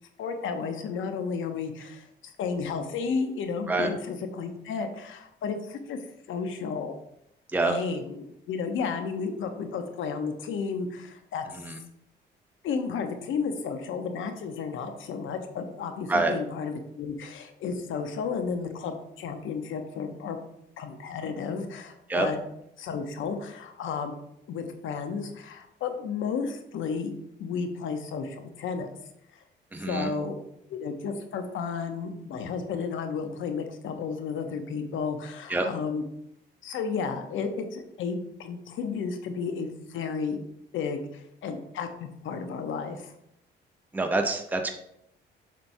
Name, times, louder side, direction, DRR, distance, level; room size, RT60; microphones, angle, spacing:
voice 1, 0.2-2.1 2.4-6.0 6.3-6.9 7.6-11.4 12.6-20.4 20.8-22.4 22.8-24.1 24.5-27.1 27.4-28.9 29.3-29.4 29.8-30.4 30.7-36.0 36.6-40.4 40.7-43.1, left 5 dB, 80° left, 6 dB, 0.9 m, -32 dB
voice 2, 29.7-30.1 35.5-35.7 43.9-44.7, right 2 dB, 10° right, 4 dB, 0.7 m, -26 dB
7.4 x 6.8 x 2.7 m, 0.76 s
cardioid pair, 90°, 20 cm